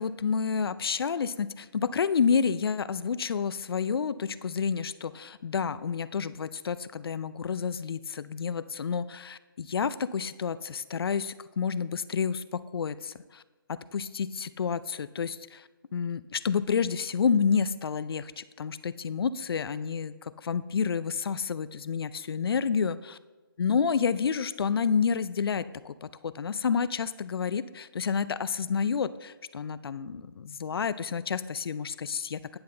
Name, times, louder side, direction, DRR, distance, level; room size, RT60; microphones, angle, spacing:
voice 1, 0.0-13.4 13.7-15.6 15.9-23.2 23.6-32.6, left 6 dB, 75° left, 16 dB, 0.4 m, -29 dB
9.6 x 5.7 x 3.9 m, 1.3 s
hypercardioid pair, 155°, 13 cm